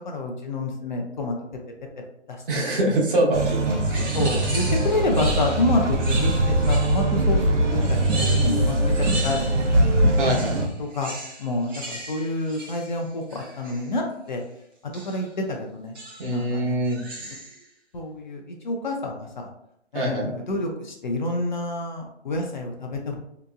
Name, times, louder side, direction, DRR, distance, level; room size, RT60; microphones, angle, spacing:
voice 1, 0.0-1.4 2.3-2.7 4.1-7.4 7.9-8.8 9.2-9.4 9.7-9.8 10.8-11.1 11.4-14.4 14.8-15.9 16.3-16.8 17.9-19.5 19.9-23.2, left 2 dB, 40° left, 1 dB, 0.5 m, -28 dB
voice 2, 2.5-4.1 10.2-10.6 16.2-17.0 19.9-20.3, right 1 dB, 50° right, -3 dB, 1.1 m, -24 dB
sound 1, 3.3-10.7, right 1 dB, 90° right, 0.8 m, -22 dB
sound 2, 3.9-7.2 7.8-9.8 10.1-13.9 14.9-15.3 15.9-16.4 16.8-17.6, right 2 dB, 20° right, 0.6 m, -37 dB
3.6 x 2.8 x 2.3 m, 0.76 s
hypercardioid pair, 150°, 35 cm